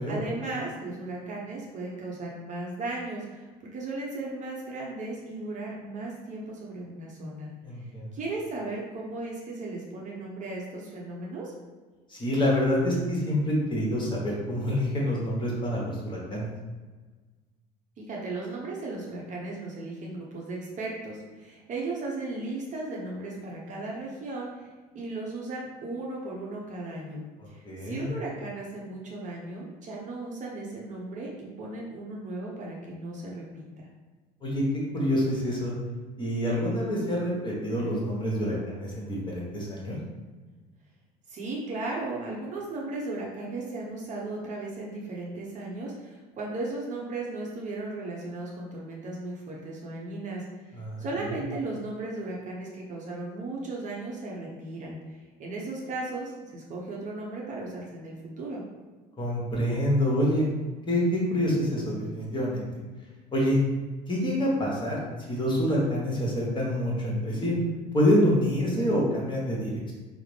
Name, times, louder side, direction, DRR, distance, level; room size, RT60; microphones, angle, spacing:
voice 1, 0.1-7.5 8.1-11.5 18.0-24.7 24.9-33.9 41.3-50.4 51.0-58.6, right 2 dB, 35° right, -3 dB, 0.8 m, -36 dB
voice 2, 7.6-8.1 12.1-16.5 27.4-28.1 34.4-34.6 34.9-35.7 36.2-40.0 50.7-51.1 59.2-60.5 60.9-62.7 63.3-63.6 64.1-65.0 65.3-67.6 67.9-69.9, equal, 20° left, -4 dB, 1.1 m, -27 dB
4.7 x 2.1 x 3.2 m, 1.3 s
figure-of-eight pair, 60°, 21 cm